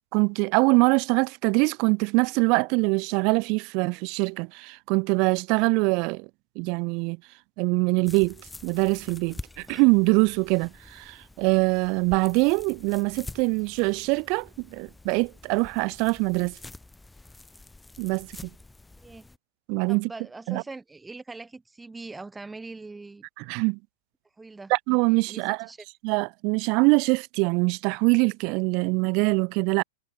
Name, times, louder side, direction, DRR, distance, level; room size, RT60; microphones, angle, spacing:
voice 1, 0.1-6.3 6.6-7.2 7.6-8.4 8.6-16.6 18.0-18.5 19.7-20.1 20.5-20.6 23.4-23.8 24.7-25.7 26.0-29.8, right 31 dB, 45° right, 0.5 m, -23 dB
sound 1, 8.0-19.4, left 2 dB, 5° left, 1.6 m, -47 dB
voice 2, 19.9-23.3 24.4-24.7 25.1-25.8, right 3 dB, 10° right, 1.5 m, -42 dB
hypercardioid pair, 110°, 0 cm